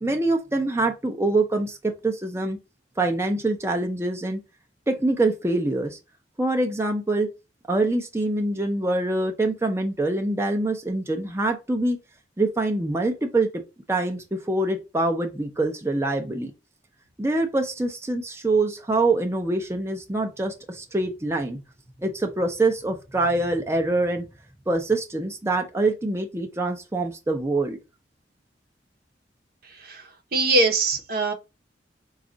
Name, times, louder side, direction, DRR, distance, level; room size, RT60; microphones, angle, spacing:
voice 1, 0.0-2.6 3.0-4.4 4.9-6.0 6.4-7.3 7.7-12.0 12.4-13.5 13.9-16.5 17.2-21.6 22.0-24.3 24.7-27.8, right 2 dB, 15° right, 0.6 m, -25 dB
voice 2, 29.6-31.3, right 2 dB, 60° right, 0.8 m, -23 dB
5.1 x 2.4 x 3.8 m
head